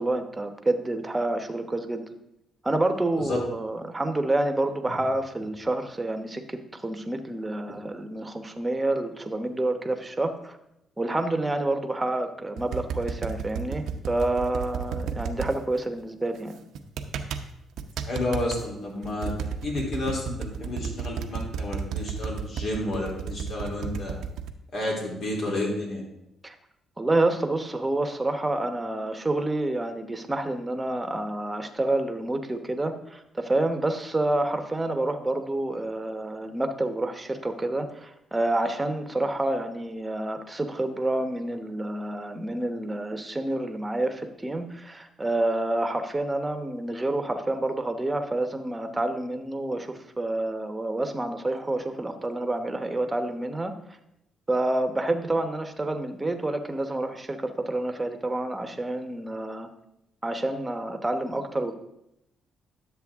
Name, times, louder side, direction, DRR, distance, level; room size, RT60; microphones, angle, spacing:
voice 1, 0.0-2.1 2.6-10.6 11.0-16.6 26.4-26.5 27.0-53.7 54.5-59.7 60.2-61.8, right 2 dB, 15° right, 6 dB, 1.0 m, -28 dB
sound 1, 12.6-15.5 16.8-17.4 17.8-18.6 19.0-24.5, right 7 dB, 80° right, 0.7 m, -32 dB
voice 2, 18.1-19.3 19.6-24.1 24.7-26.0, left 1 dB, 65° left, -2 dB, 3.3 m, -30 dB
11.0 x 7.5 x 3.6 m, 0.83 s
cardioid pair, 90°, 0 cm